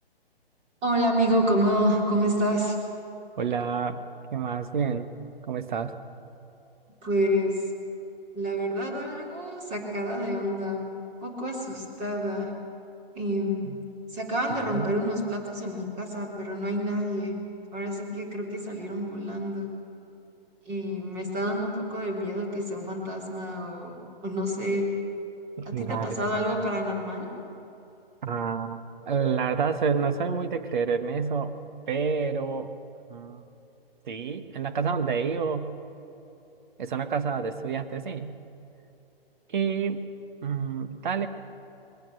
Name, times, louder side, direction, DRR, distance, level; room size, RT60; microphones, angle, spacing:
voice 1, 0.8-2.8 7.0-7.6 8.3-10.9 11.2-12.5 13.1-13.7 14.1-17.4 17.7-19.7 20.7-24.9 25.7-27.3, equal, 25° right, 0 dB, 3.5 m, -28 dB
voice 2, 3.4-4.0 4.3-5.1 5.5-5.9 13.6-13.7 14.6-14.9 25.6-26.3 28.2-28.8 29.1-31.5 31.9-32.7 33.1-33.5 34.1-35.7 36.8-38.3 39.5-40.0 40.4-41.3, right 6 dB, 50° right, 9 dB, 1.5 m, -28 dB
21.0 x 18.0 x 8.0 m, 2.9 s
figure-of-eight pair, 135°, 30 cm